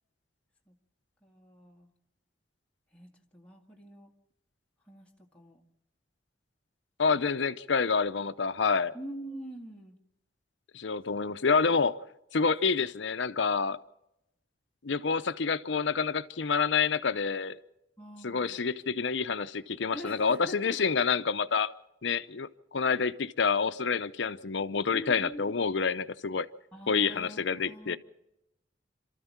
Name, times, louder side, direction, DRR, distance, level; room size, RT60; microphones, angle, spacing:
voice 1, 1.2-1.9 2.9-4.1 4.9-5.7 7.1-7.4 8.9-10.0 18.0-18.6 19.9-20.8 24.9-25.6 26.7-28.0, equal, 5° left, 2.0 m, -45 dB
voice 2, 7.0-8.9 10.7-12.0 12.3-13.8 14.8-17.6 18.2-21.7 22.0-26.5 26.9-28.0, left 5 dB, 70° left, 0.7 m, -28 dB
27.5 x 13.5 x 7.3 m
head